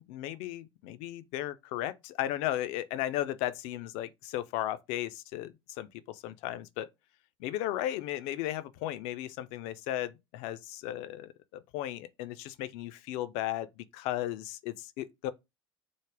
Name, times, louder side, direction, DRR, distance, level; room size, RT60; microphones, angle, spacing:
voice 1, 0.0-6.9 7.4-15.3, left 13 dB, 50° left, 0.4 m, -35 dB
3.4 x 2.0 x 3.6 m
figure-of-eight pair, 70°, 14 cm